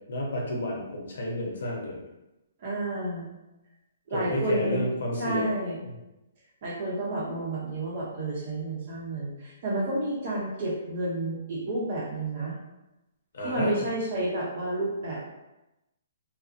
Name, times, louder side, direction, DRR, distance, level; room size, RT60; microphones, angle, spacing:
voice 1, 0.1-2.0 4.1-5.5 5.8-5.9 13.3-13.7, left 1 dB, 65° left, -2 dB, 0.7 m, -30 dB
voice 2, 2.6-3.3 4.1-4.9 5.2-5.9 6.6-12.6 13.4-15.2, right 1 dB, 35° right, -5 dB, 0.7 m, -30 dB
2.6 x 2.0 x 2.4 m, 0.96 s
hypercardioid pair, 175°, 0 cm